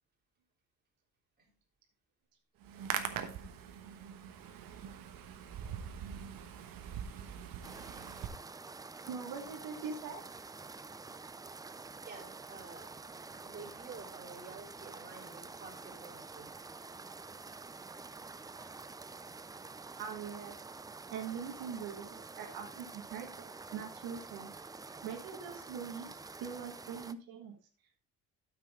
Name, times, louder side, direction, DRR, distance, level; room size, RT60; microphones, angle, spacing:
Hands, 2.6-8.3, right 8 dB, 70° right, 1.3 m, -42 dB
sound 1, 7.6-27.1, right 4 dB, 10° right, 0.3 m, -48 dB
voice 1, 9.1-10.2 18.6-18.7 20.0-20.6 21.1-24.5 25.0-26.1 26.4-27.6, right 6 dB, 90° right, 2 dB, 1.6 m, -42 dB
voice 2, 12.0-12.9 13.4-16.5, right 4 dB, 30° right, -4 dB, 3.6 m, -50 dB
9.0 x 7.4 x 3.6 m, 0.38 s
cardioid pair, 120°, 35 cm